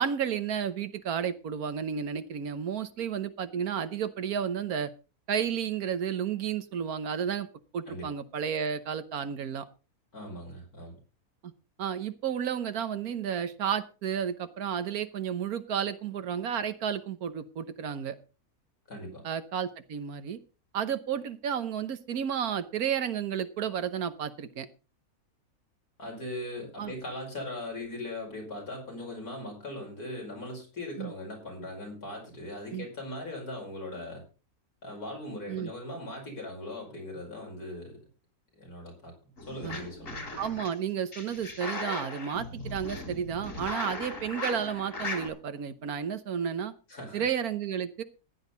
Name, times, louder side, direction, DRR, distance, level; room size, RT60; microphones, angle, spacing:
voice 1, 0.0-4.9 5.3-7.5 7.7-9.6 11.4-11.5 11.8-18.2 19.2-20.4 20.7-24.7 26.8-26.9 31.0-31.1 32.7-32.9 35.5-35.7 39.6-39.8 40.4-46.7 47.1-48.0, right 8 dB, 75° right, 11 dB, 1.5 m, -32 dB
voice 2, 10.1-11.0 18.9-19.2 26.0-34.2 34.8-38.0 38.6-39.1 39.5-40.2 46.9-47.2, left 1 dB, 80° left, 0 dB, 5.8 m, -39 dB
sound 1, 39.4-40.7 41.1-45.3, left 2 dB, 55° left, 3.9 m, -38 dB
14.5 x 10.5 x 4.0 m, 0.32 s
omnidirectional pair, 1.6 m